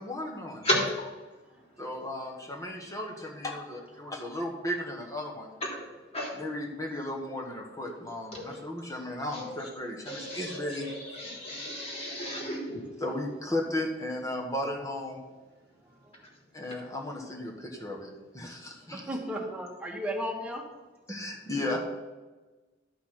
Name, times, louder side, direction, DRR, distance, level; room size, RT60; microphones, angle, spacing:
voice 1, 0.0-0.7 1.8-5.5 6.4-10.9 13.0-15.2 16.5-19.1 21.1-21.8, left 1 dB, 20° left, 0 dB, 1.5 m, -35 dB
voice 2, 0.6-1.8 4.0-4.1 5.6-6.4 8.3-8.8 9.3-9.7 10.0-13.0 16.1-16.4, left 1 dB, 35° left, -2 dB, 3.1 m, -35 dB
voice 3, 15.8-16.2 18.9-20.6, equal, 5° right, -1 dB, 1.8 m, -35 dB
12.0 x 5.7 x 5.9 m, 1.2 s
head